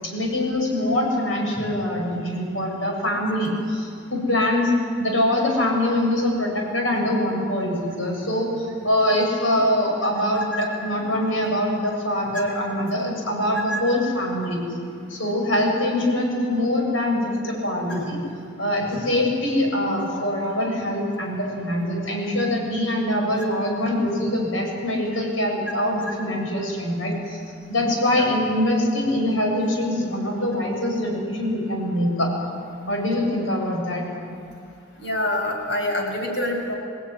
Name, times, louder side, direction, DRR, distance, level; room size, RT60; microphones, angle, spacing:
voice 1, 0.0-4.7 5.0-14.6 15.1-18.2 18.6-27.4 27.7-32.3 32.9-34.0, left 1 dB, 85° left, 0 dB, 7.8 m, -23 dB
voice 2, 35.0-36.7, left 1 dB, 65° left, 1 dB, 6.4 m, -26 dB
26.0 x 19.0 x 9.9 m, 2.4 s
head